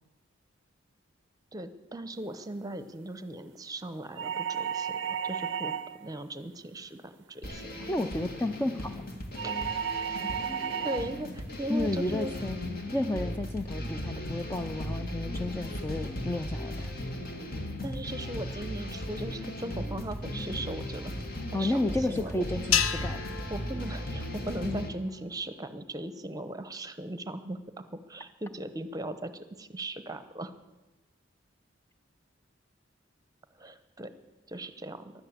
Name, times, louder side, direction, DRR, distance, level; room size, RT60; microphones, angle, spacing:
voice 1, 1.5-7.9 9.4-9.5 10.8-12.3 17.8-21.1 21.5-22.7 23.5-30.5 33.6-34.1 34.5-35.1, right 1 dB, 20° right, 11 dB, 0.9 m, -38 dB
sound 1, 4.2-6.1 9.4-11.2, right 8 dB, 65° right, 0.5 m, -33 dB
sound 2, 7.4-24.9, left 1 dB, 50° left, 1.9 m, -37 dB
voice 2, 7.9-8.9 11.7-12.6 12.9-16.9 21.5-23.2 24.7-24.8, left 2 dB, 10° left, 7 dB, 0.4 m, -32 dB
sound 3, 22.7-25.2, left 9 dB, 80° left, 0.7 m, -32 dB
15.5 x 11.5 x 7.4 m, 1.1 s
head